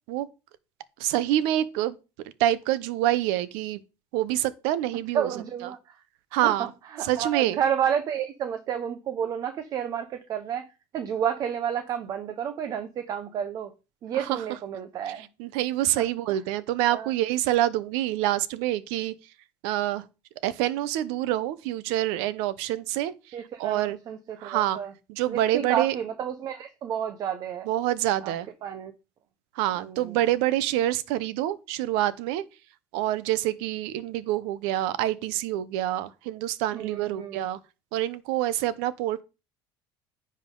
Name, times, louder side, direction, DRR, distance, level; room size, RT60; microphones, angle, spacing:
voice 1, 1.0-1.9 2.4-3.8 4.1-5.3 6.3-6.7 7.1-7.6 14.2-14.4 15.4-19.1 19.6-20.0 20.4-23.1 23.6-24.0 24.4-24.8 25.1-25.9 27.7-28.5 29.6-32.4 32.9-37.6 37.9-39.2, right 13 dB, 85° right, 0.8 m, -26 dB
voice 2, 5.1-6.0 6.4-10.7 10.9-13.7 14.0-15.3 16.0-16.4 16.9-17.1 23.3-24.9 25.3-27.7 28.2-28.3 28.6-28.9 29.7-30.2 36.7-37.5, right 8 dB, 40° right, 0.8 m, -31 dB
10.0 x 5.5 x 3.8 m
cardioid pair, 145°, 9 cm